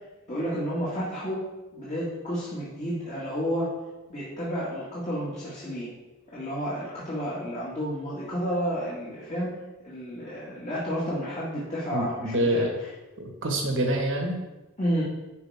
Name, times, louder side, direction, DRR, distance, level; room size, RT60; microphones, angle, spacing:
voice 1, 0.3-1.4 1.7-3.8 4.1-5.9 6.3-12.7 14.8-15.0, equal, 30° left, -9 dB, 2.0 m, -31 dB
voice 2, 11.9-12.7 13.2-14.4, right 1 dB, 65° right, 1 dB, 1.5 m, -26 dB
10.5 x 5.3 x 3.6 m, 1.1 s
head